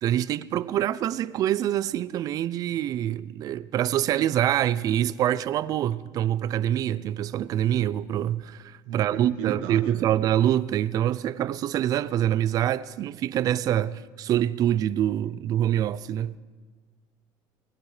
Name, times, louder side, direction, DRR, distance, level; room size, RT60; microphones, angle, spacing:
voice 1, 0.0-16.3, right 11 dB, 45° right, 0.4 m, -25 dB
voice 2, 8.9-10.1, right 8 dB, 90° right, 0.9 m, -35 dB
20.0 x 17.5 x 3.3 m
cardioid pair, 135°, 9 cm